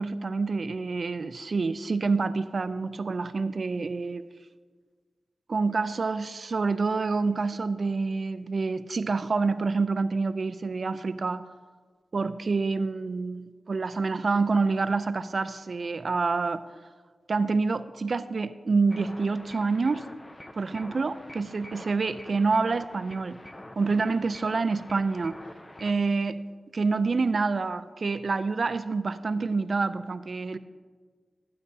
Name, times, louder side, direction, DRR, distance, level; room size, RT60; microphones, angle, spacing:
voice 1, 0.0-4.3 5.5-11.4 12.1-16.6 17.3-20.1 20.5-23.4 23.8-25.4 25.8-26.4 26.7-30.6, right 4 dB, 55° right, 12 dB, 0.3 m, -27 dB
sound 1, 18.9-26.0, left 1 dB, 20° left, 0.5 m, -46 dB
14.5 x 9.5 x 2.7 m, 1.5 s
cardioid pair, 70°, 0 cm